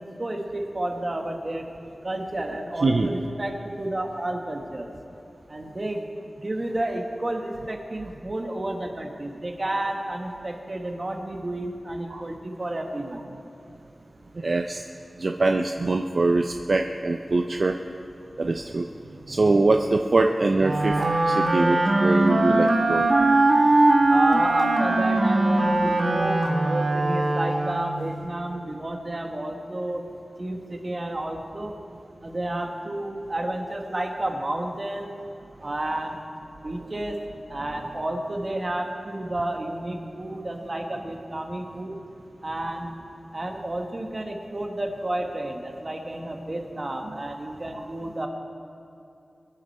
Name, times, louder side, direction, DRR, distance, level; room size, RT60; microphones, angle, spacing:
voice 1, 0.0-1.6 2.0-4.9 5.5-6.0 6.4-13.2 24.1-30.0 30.4-31.8 32.2-35.1 35.6-36.2 36.6-37.2 37.5-42.0 42.4-42.9 43.3-48.3, right 1 dB, 35° right, 3 dB, 1.6 m, -31 dB
voice 2, 14.4-14.8 15.2-17.8 18.4-18.9 19.3-23.1, right 3 dB, 55° right, 4 dB, 0.5 m, -23 dB
Wind instrument woodwind instrument, 20.6-28.0, right 2 dB, 85° right, 1.5 m, -21 dB
23.0 x 10.5 x 4.3 m, 2.7 s
wide cardioid pair, 95°, 0 cm